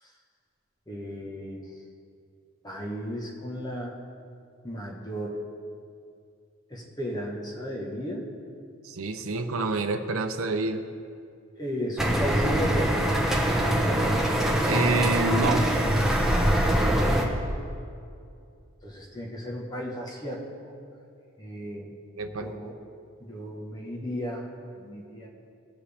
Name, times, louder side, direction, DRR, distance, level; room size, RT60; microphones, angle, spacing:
voice 1, 0.9-1.6 2.6-3.9 4.6-5.4 6.7-8.2 11.6-12.9 18.8-20.4 21.4-21.9 22.4-22.7 23.2-24.5 24.7-25.3, equal, 20° left, -2 dB, 1.2 m, -34 dB
voice 2, 8.8-10.8 14.7-15.7 22.2-22.5, right 3 dB, 70° right, 6 dB, 0.6 m, -27 dB
sound 1, 12.0-17.2, right 1 dB, ahead, 0.9 m, -23 dB
19.0 x 7.6 x 3.4 m, 2.5 s
head